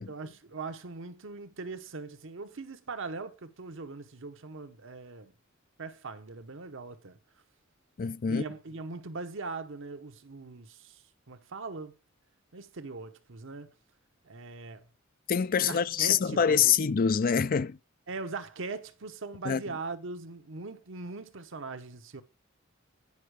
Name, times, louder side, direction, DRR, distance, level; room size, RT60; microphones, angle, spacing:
voice 1, 0.1-5.3 5.8-7.2 8.3-12.0 12.5-13.7 14.2-14.9 15.6-16.6 18.1-22.2, right 3 dB, 65° right, 1.0 m, -40 dB
voice 2, 8.0-8.4 15.3-17.8 19.5-19.6, left 7 dB, 45° left, 0.4 m, -25 dB
9.6 x 5.6 x 4.8 m
head